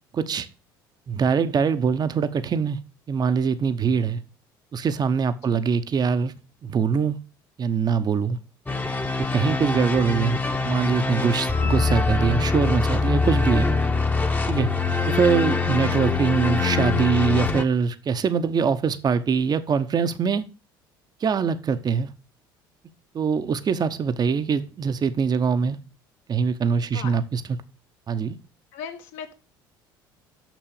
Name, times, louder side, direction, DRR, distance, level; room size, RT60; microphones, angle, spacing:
voice 1, 0.1-0.5 1.1-2.8 3.1-4.2 4.7-6.3 6.6-7.2 7.6-8.4 9.2-10.4 10.6-13.7 14.5-14.7 15.1-20.4 21.2-22.1 23.1-25.8 26.3-27.6 28.1-28.4, right 6 dB, 35° right, 0.8 m, -23 dB
sound 1, 8.7-17.6, left 4 dB, 15° left, 1.0 m, -24 dB
voice 2, 28.7-29.3, left 7 dB, 70° left, 1.7 m, -38 dB
6.6 x 6.1 x 6.5 m
hypercardioid pair, 65°, 11 cm